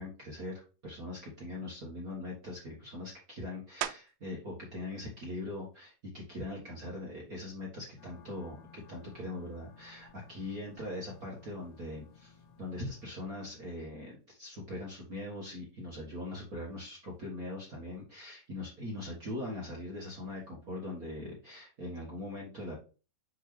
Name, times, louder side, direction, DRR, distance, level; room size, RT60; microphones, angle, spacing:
voice 1, 0.0-22.7, left 1 dB, 50° right, -3 dB, 1.0 m, -41 dB
sound 1, 3.8-4.4 5.0-9.4 9.9-15.1 15.4-21.0, right 13 dB, 80° right, 2.2 m, -49 dB
sound 2, 8.0-13.0, left 5 dB, 70° left, 1.6 m, -58 dB
7.0 x 4.1 x 3.2 m, 0.34 s
omnidirectional pair, 4.1 m